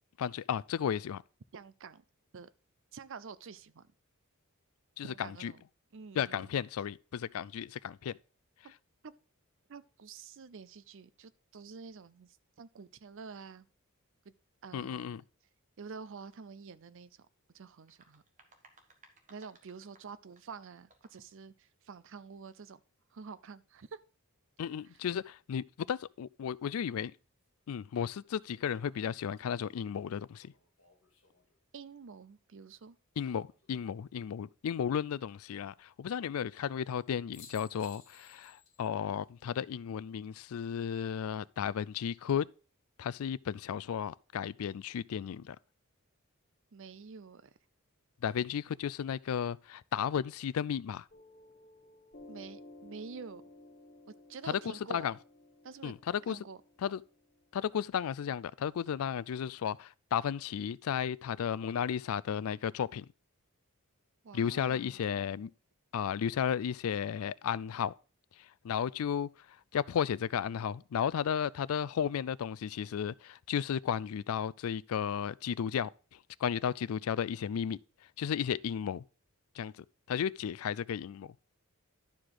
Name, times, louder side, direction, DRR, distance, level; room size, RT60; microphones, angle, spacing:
voice 1, 0.2-1.2 5.0-5.5 6.2-8.1 14.7-15.2 24.6-27.1 27.7-30.5 33.2-42.5 43.0-45.6 48.2-51.1 54.5-55.1 55.8-56.4 56.8-57.0 57.5-63.1 64.3-65.5 65.9-67.9 68.4-77.8 78.2-79.0 79.6-81.3, left 8 dB, 75° left, 0.4 m, -34 dB
voice 2, 1.5-2.0 2.3-2.5 2.9-3.9 5.0-5.6 5.9-6.6 8.6-8.7 9.0-9.1 9.7-13.7 14.2-14.3 14.6-15.2 15.8-17.3 17.5-18.2 19.3-22.8 23.1-24.0 31.7-33.0 46.7-47.5 52.3-53.4 54.1-55.1 55.6-55.9 56.3-56.6 64.2-65.0, right 5 dB, 60° right, 0.5 m, -48 dB
sound 1, 17.7-21.4, right 3 dB, 35° right, 1.4 m, -63 dB
sound 2, 28.4-31.6 33.4-34.1 36.9-37.0 37.3-38.9 39.2-39.3 41.6-42.1, left 6 dB, 60° left, 2.2 m, -60 dB
Piano, 51.1-58.2, left 2 dB, 45° left, 1.3 m, -56 dB
12.0 x 4.9 x 3.8 m
head